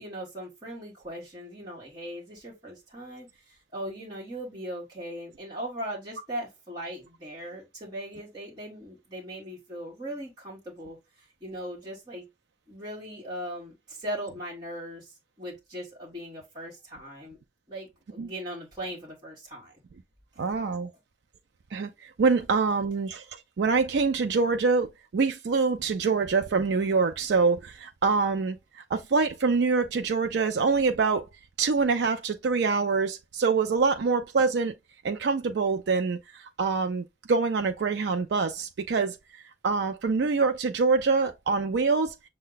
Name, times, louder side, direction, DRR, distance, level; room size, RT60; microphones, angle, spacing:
voice 1, 0.0-12.2 12.7-17.4 17.7-19.7 20.3-20.4, right 1 dB, 25° right, 1.4 m, -39 dB
voice 2, 20.4-20.9 21.7-31.3 31.6-34.7 35.0-42.2, right 4 dB, 70° right, 0.4 m, -25 dB
6.4 x 2.2 x 3.8 m
head